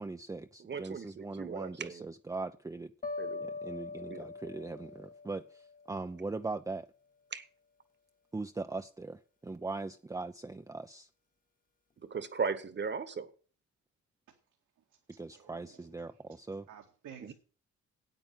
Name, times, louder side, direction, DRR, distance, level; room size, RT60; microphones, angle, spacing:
voice 1, 0.0-2.9 3.4-6.9 8.3-11.1 15.2-16.7, right 3 dB, 10° right, 0.6 m, -40 dB
voice 2, 0.6-2.1 3.2-3.4 4.1-4.2 7.3-7.5 12.0-13.3 17.2-17.3, right 5 dB, 35° right, 1.4 m, -37 dB
sound 1, 3.0-6.1, left 4 dB, 30° left, 1.3 m, -42 dB
voice 3, 14.8-16.4 16.7-17.3, right 8 dB, 75° right, 2.1 m, -55 dB
9.0 x 8.8 x 7.5 m
cardioid pair, 90°, 30 cm